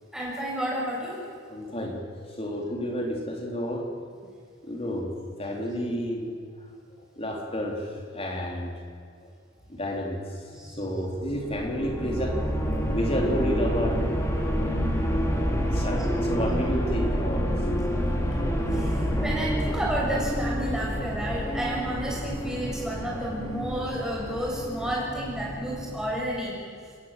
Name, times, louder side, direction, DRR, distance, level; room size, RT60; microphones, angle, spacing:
voice 1, 0.1-1.2 10.5-10.8 18.7-26.5, right 1 dB, 5° right, -5 dB, 6.8 m, -31 dB
voice 2, 1.5-3.9 4.6-5.1 5.4-6.3 7.2-7.8 8.1-8.7 9.7-10.2 10.8-12.4 12.9-15.0 15.7-17.6, equal, 30° left, 1 dB, 3.6 m, -30 dB
sound 1, 11.1-26.1, equal, 15° left, 2.9 m, -28 dB
29.0 x 15.0 x 7.6 m, 2.2 s
head